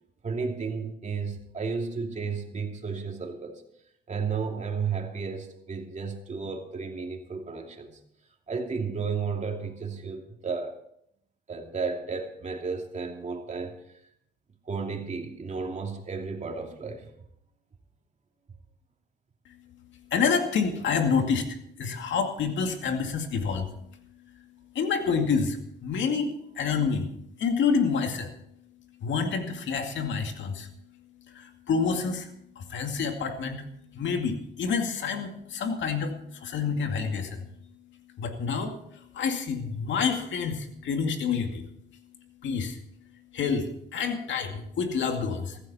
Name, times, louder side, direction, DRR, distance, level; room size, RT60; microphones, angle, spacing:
voice 1, 0.2-3.6 4.1-8.0 8.5-10.8 11.5-13.7 14.6-17.1, right 5 dB, 35° right, 2.8 m, -33 dB
voice 2, 20.1-23.7 24.7-27.1 27.4-28.3 29.0-30.7 31.3-32.3 32.6-33.7 33.9-37.5 38.2-41.6 42.4-42.8 43.3-45.6, left 5 dB, 70° left, 2.3 m, -28 dB
15.0 x 15.0 x 4.3 m
cardioid pair, 90°, 20 cm